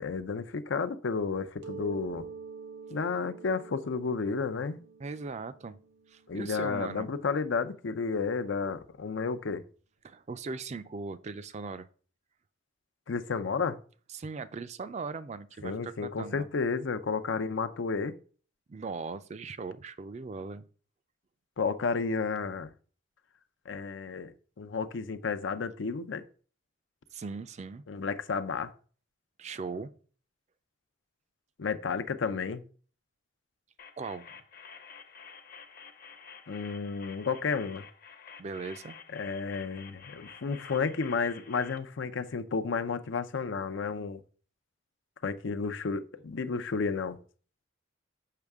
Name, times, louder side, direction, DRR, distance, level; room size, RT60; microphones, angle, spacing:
voice 1, 0.0-2.2 2.9-4.8 6.3-9.6 13.1-13.8 15.6-18.1 21.6-22.7 23.7-24.3 24.6-26.2 27.9-28.7 31.6-32.6 36.5-37.8 39.1-44.2 45.2-47.2, left 5 dB, 85° left, 0.5 m, -32 dB
Mallet percussion, 1.6-7.2, right 5 dB, 75° right, 0.8 m, -47 dB
voice 2, 5.0-5.8 6.1-7.1 10.0-11.9 14.1-16.5 18.7-20.7 27.1-27.8 29.4-29.9 34.0-34.3 38.4-39.0, right 4 dB, 35° right, 0.4 m, -39 dB
sound 1, 33.8-41.8, left 6 dB, 50° left, 0.8 m, -50 dB
6.6 x 5.6 x 3.5 m
head